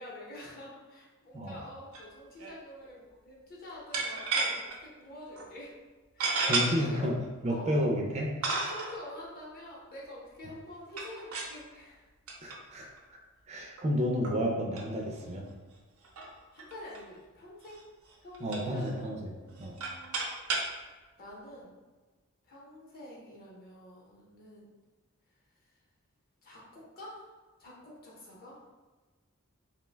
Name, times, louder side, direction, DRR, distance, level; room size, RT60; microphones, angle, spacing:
voice 1, 0.0-5.7 6.1-7.1 7.5-7.7 8.4-12.1 16.5-17.8 18.2-20.2 21.2-21.8 22.5-24.7 26.4-28.6, left 1 dB, 45° left, -4 dB, 0.7 m, -47 dB
sound 1, 1.9-2.1 2.4-2.5 3.9-4.8 5.3-5.5 6.2-6.7 7.5-7.6 8.4-9.0 10.9-11.6 12.3-12.6 13.0-13.1 13.8-13.9 14.2-14.4 14.8-14.9 15.1-15.2 15.5-15.6 16.0-17.0 17.6-17.8 18.1-18.9 19.5-20.7, right 3 dB, 90° right, 0.5 m, -32 dB
voice 2, 6.2-7.1 7.4-8.4 12.4-13.2 13.5-15.4 18.4-19.3 19.6-19.8, equal, 30° right, 0 dB, 0.3 m, -31 dB
2.5 x 2.1 x 3.2 m, 1.3 s
head